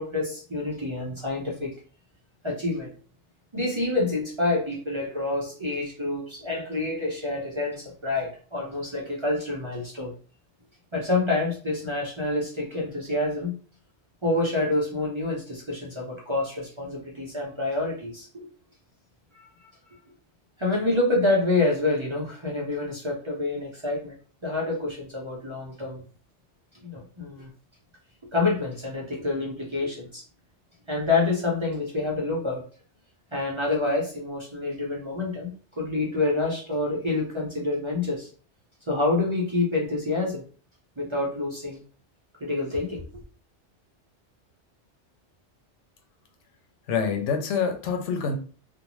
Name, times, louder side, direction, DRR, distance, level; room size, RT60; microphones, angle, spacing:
voice 1, 0.0-1.7 2.4-2.9 3.5-10.1 10.9-13.6 14.2-18.5 19.3-19.7 20.6-24.1 24.4-26.0 26.8-27.5 28.3-30.2 30.9-32.6 33.3-35.5 35.8-38.3 38.9-40.4 41.0-41.8 42.4-43.0, left 2 dB, 35° right, -3 dB, 0.5 m, -27 dB
voice 2, 46.9-48.4, left 6 dB, 85° left, 5 dB, 0.9 m, -26 dB
2.5 x 2.1 x 3.0 m, 0.40 s
omnidirectional pair, 1.2 m